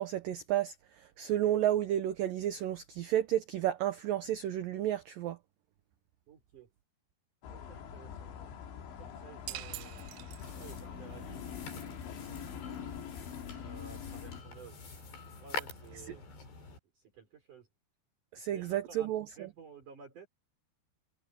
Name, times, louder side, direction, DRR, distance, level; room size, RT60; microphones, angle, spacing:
voice 1, 0.0-5.4 18.3-19.3, right 12 dB, 70° right, 2.2 m, -31 dB
voice 2, 6.3-6.7 7.5-8.3 9.0-10.1 10.6-13.0 13.6-14.8 15.4-16.2 16.9-17.7 18.4-20.3, right 5 dB, 45° right, 5.2 m, -54 dB
sound 1, 7.4-14.4, left 8 dB, 90° left, 4.6 m, -44 dB
sound 2, 9.5-10.9, right 17 dB, 90° right, 3.0 m, -44 dB
sound 3, 10.4-16.8, left 5 dB, 70° left, 8.4 m, -46 dB
omnidirectional pair, 5.1 m